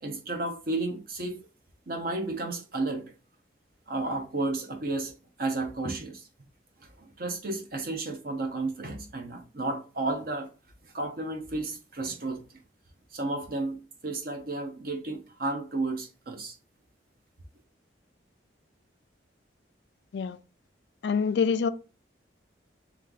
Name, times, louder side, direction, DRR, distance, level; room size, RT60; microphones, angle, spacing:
voice 1, 0.0-1.5 1.9-3.1 3.9-6.3 7.0-10.5 10.8-12.4 13.1-13.8 14.0-16.5, right 2 dB, 50° right, 0.9 m, -32 dB
voice 2, 21.0-21.7, left 5 dB, 65° left, 0.3 m, -25 dB
3.6 x 3.2 x 3.9 m
head